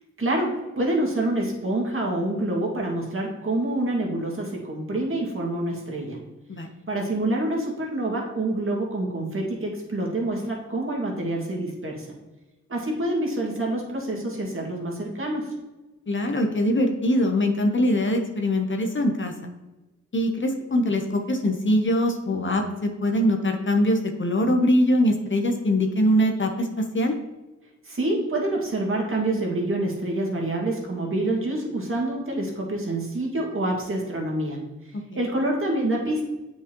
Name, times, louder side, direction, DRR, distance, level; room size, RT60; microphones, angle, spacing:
voice 1, 0.2-6.2 6.9-12.1 12.7-15.5 27.9-34.6 35.2-36.2, right 1 dB, 45° right, -1 dB, 2.0 m, -27 dB
voice 2, 16.1-19.3 20.1-26.7 26.9-27.1, left 1 dB, 40° left, 3 dB, 0.9 m, -22 dB
8.2 x 4.8 x 3.0 m, 1.1 s
cardioid pair, 60°, 30 cm